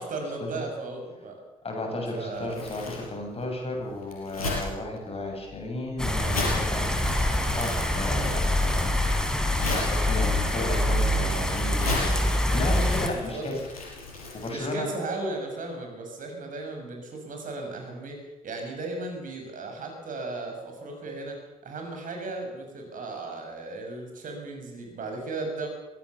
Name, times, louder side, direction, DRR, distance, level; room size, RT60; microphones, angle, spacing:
voice 1, 0.0-1.4 2.2-2.6 13.0-13.5 14.5-25.7, right 2 dB, 45° right, 3 dB, 6.6 m, -36 dB
voice 2, 1.6-13.5 14.3-14.9, left 2 dB, 35° left, 1 dB, 7.9 m, -34 dB
Crumpling crinkling, 2.3-14.5, left 3 dB, 80° left, 5.0 m, -37 dB
sound 1, 6.0-13.1, left 1 dB, 5° left, 4.4 m, -25 dB
23.0 x 18.0 x 7.1 m, 1.0 s
figure-of-eight pair, 45°, 18 cm